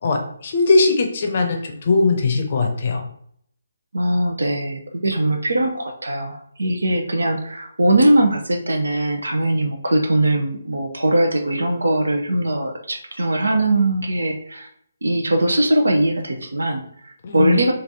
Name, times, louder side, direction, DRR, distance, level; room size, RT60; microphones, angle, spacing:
voice 1, 0.0-3.0 17.2-17.6, left 3 dB, 40° left, 3 dB, 0.6 m, -19 dB
voice 2, 3.9-14.7 15.0-17.7, right 1 dB, 65° right, 3 dB, 0.7 m, -20 dB
3.3 x 2.5 x 4.0 m, 0.67 s
figure-of-eight pair, 140°, 0 cm